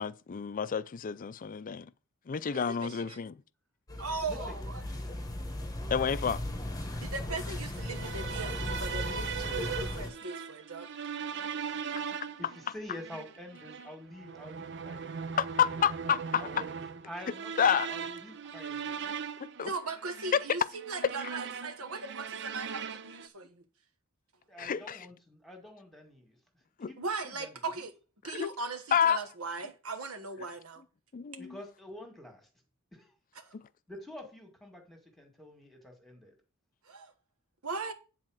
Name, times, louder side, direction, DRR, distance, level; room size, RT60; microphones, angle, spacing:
voice 1, 0.0-1.9 2.3-3.4 5.9-6.4 15.4-16.4 17.6-17.9 19.4-19.7 24.6-25.1 26.8-26.9 28.3-28.5 28.9-29.2 31.1-31.5 33.5-33.7, left 7 dB, 40° left, 0.4 m, -29 dB
voice 2, 2.5-3.2 4.0-4.8 7.0-10.9 19.6-23.6 27.0-27.9 28.2-30.8 33.4-33.5 36.8-37.1 37.6-37.9, right 3 dB, 75° right, 1.3 m, -38 dB
sound 1, 3.9-10.1, left 1 dB, 15° left, 1.1 m, -37 dB
voice 3, 4.2-4.8 12.4-16.7 17.1-19.1 24.5-26.4 26.9-27.8 31.4-32.5 32.9-33.1 33.9-36.3, left 1 dB, ahead, 2.0 m, -48 dB
sound 2, 7.8-23.3, right 7 dB, 55° right, 0.6 m, -39 dB
9.7 x 4.2 x 6.4 m
head